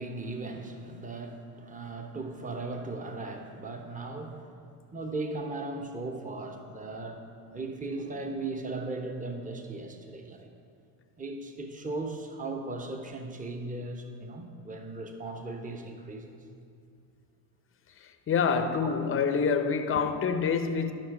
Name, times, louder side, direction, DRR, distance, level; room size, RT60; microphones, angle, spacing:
voice 1, 0.0-4.5 4.9-7.2 7.5-10.5 11.2-16.4 18.8-19.0 19.9-20.1, right 2 dB, 15° right, 1.1 m, -37 dB
voice 2, 18.3-20.9, left 6 dB, 30° left, 0.8 m, -26 dB
12.0 x 5.8 x 4.9 m
hypercardioid pair, 80°, 45 cm